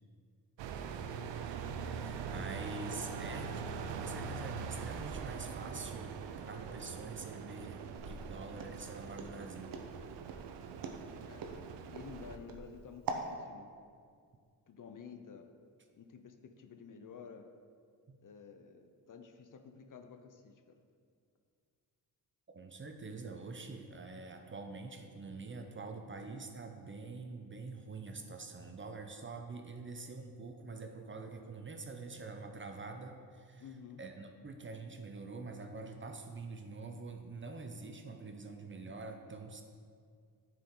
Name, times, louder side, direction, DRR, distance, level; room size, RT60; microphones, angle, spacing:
sound 1, 0.6-12.4, right 6 dB, 90° right, 0.5 m, -43 dB
voice 1, 1.8-6.1 6.4-9.8 18.1-18.2 22.5-33.6 34.0-39.6, right 3 dB, 30° right, 5 dB, 0.7 m, -46 dB
Walk footsteps, 8.0-13.3, right 4 dB, 55° right, 0.9 m, -43 dB
voice 2, 11.2-13.7 14.7-15.5 15.9-17.5 18.2-20.8 33.6-34.0, left 6 dB, 50° left, 6 dB, 0.7 m, -52 dB
9.4 x 4.6 x 3.8 m, 2.2 s
cardioid pair, 70°, 42 cm